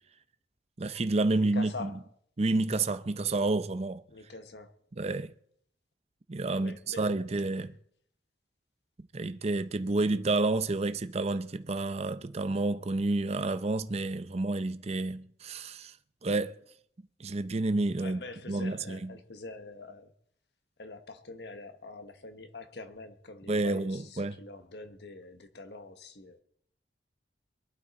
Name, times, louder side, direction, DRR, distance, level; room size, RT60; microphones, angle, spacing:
voice 1, 0.8-1.9 2.4-4.0 5.0-5.3 6.3-7.8 9.1-15.9 16.2-16.5 17.2-18.2 18.5-19.2 23.5-24.4, right 2 dB, 35° right, 0.6 m, -29 dB
voice 2, 1.4-2.0 4.1-4.7 6.5-7.4 18.0-20.1 20.8-26.4, left 3 dB, 70° left, 1.3 m, -45 dB
22.5 x 11.5 x 4.2 m
head